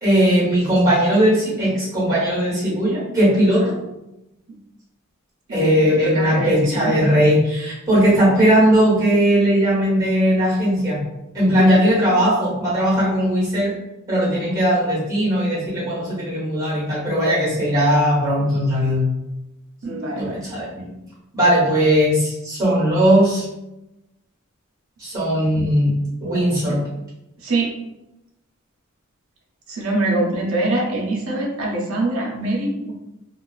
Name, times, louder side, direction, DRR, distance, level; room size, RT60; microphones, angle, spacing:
voice 1, 0.0-3.7 5.5-11.0 11.3-13.7 14.1-19.1 20.2-20.9 21.3-23.4 25.0-25.9 26.2-26.8, equal, 15° right, -8 dB, 1.2 m, -18 dB
voice 2, 5.5-7.1 11.5-11.8 19.8-20.4 26.7-26.8 27.4-27.7 29.7-32.9, right 2 dB, 75° right, -2 dB, 0.6 m, -24 dB
2.3 x 2.3 x 2.3 m, 0.93 s
head